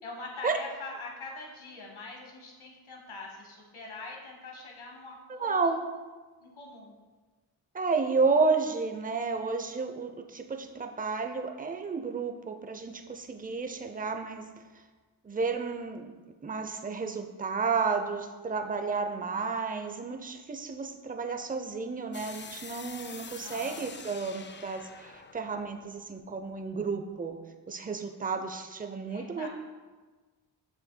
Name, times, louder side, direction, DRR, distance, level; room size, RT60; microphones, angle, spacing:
voice 1, 0.0-5.7 6.4-6.9 23.4-23.9 29.1-29.5, left 3 dB, 75° left, 0 dB, 1.6 m, -43 dB
voice 2, 5.3-5.8 7.7-14.4 15.2-16.1 16.4-27.4 27.7-29.5, right 4 dB, 15° right, 6 dB, 0.6 m, -31 dB
sound 1, 22.1-27.0, left 5 dB, 25° left, 0.4 m, -46 dB
7.3 x 6.2 x 2.2 m, 1.3 s
cardioid pair, 45°, 49 cm